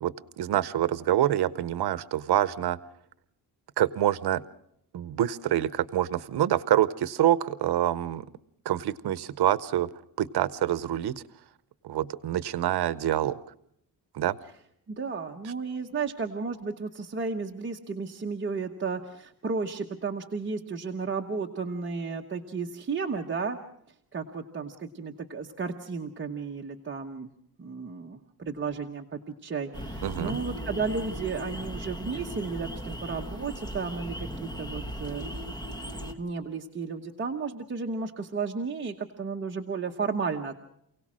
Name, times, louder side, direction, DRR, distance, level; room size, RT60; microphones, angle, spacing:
voice 1, 0.0-2.8 3.8-4.4 4.9-8.3 8.6-9.9 10.2-11.2 11.8-13.4 14.1-14.4 30.0-30.4, right 12 dB, 85° right, 16 dB, 0.8 m, -26 dB
voice 2, 14.9-23.6 24.1-27.3 27.6-35.3 36.1-40.5, right 4 dB, 30° right, 1 dB, 1.0 m, -33 dB
sound 1, 29.7-36.1, equal, 10° left, 1.4 m, -37 dB
28.0 x 17.5 x 6.2 m, 0.73 s
wide cardioid pair, 175°, 38 cm